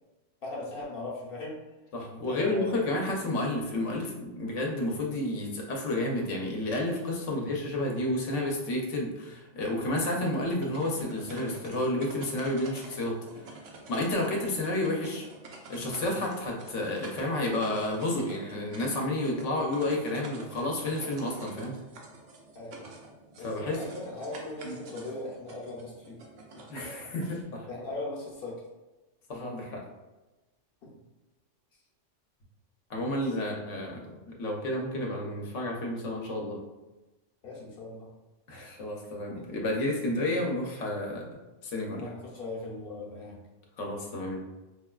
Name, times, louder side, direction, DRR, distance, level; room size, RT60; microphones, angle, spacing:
voice 1, 0.4-1.6 2.1-2.9 22.5-22.9 23.4-26.2 26.5-26.6 27.7-28.6 30.8-30.9 33.1-33.5 37.4-38.1 41.9-43.4, left 2 dB, 55° left, -4 dB, 0.9 m, -39 dB
voice 2, 1.9-13.2 13.9-15.3 15.7-21.7 23.4-23.8 24.6-24.8 26.7-27.7 29.3-29.8 32.9-36.6 38.5-41.3 41.6-42.1 43.8-44.4, left 1 dB, 75° left, 0 dB, 1.1 m, -31 dB
sound 1, 10.4-27.4, right 2 dB, 85° right, 1.0 m, -48 dB
4.8 x 2.2 x 2.3 m, 1.1 s
omnidirectional pair, 1.3 m